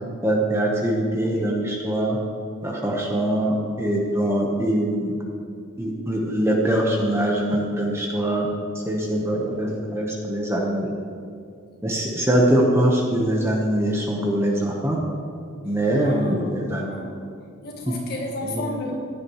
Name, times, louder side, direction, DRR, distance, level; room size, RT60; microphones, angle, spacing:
voice 1, 0.2-2.2 2.6-5.1 5.8-8.5 8.8-10.9 11.8-15.0 15.6-16.9 18.4-18.7, right 1 dB, 10° right, -2 dB, 1.1 m, -23 dB
voice 2, 16.0-16.5 16.8-17.1 17.6-19.0, left 1 dB, 45° left, -2 dB, 1.8 m, -32 dB
15.5 x 9.9 x 3.2 m, 2.3 s
head